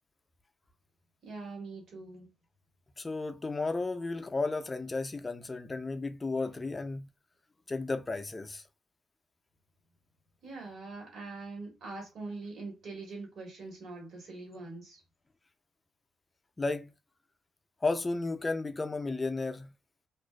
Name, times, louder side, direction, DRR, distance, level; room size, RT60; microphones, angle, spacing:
voice 1, 1.2-2.3 10.4-15.0, right 3 dB, 65° right, 1.4 m, -43 dB
voice 2, 3.0-7.1 7.7-8.6 16.6-16.9 17.8-19.7, left 3 dB, 20° left, 0.4 m, -33 dB
2.4 x 2.3 x 2.2 m
cardioid pair, 90°, 0 cm